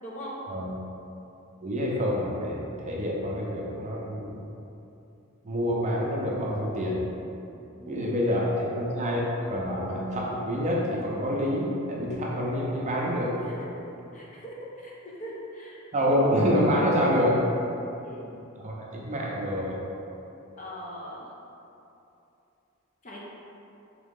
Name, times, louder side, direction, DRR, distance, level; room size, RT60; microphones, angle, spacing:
voice 1, 0.0-0.4 7.8-8.4 14.1-14.9 15.2-16.3 18.0-18.2 20.6-21.3 23.0-23.2, equal, 35° left, -5 dB, 0.7 m, -41 dB
voice 2, 1.6-4.4 5.4-7.1 7.9-9.2 9.5-13.4 15.9-17.4 18.6-19.8, equal, 35° right, -4 dB, 0.6 m, -27 dB
3.7 x 3.0 x 3.6 m, 2.8 s
head